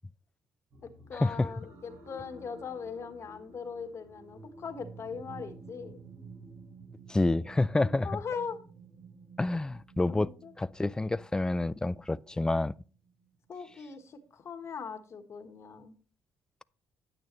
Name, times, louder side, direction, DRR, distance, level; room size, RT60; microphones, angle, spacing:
sound 1, 0.7-14.0 14.6-14.7, right 4 dB, 65° right, 3.9 m, -52 dB
voice 1, 0.8-6.0 7.8-8.6 10.1-10.5 13.5-15.9, left 6 dB, 50° left, 1.4 m, -40 dB
voice 2, 7.1-8.1 9.4-10.3 10.6-12.7, left 2 dB, 10° left, 0.3 m, -28 dB
9.4 x 8.7 x 3.1 m
cardioid pair, 90°, 6 cm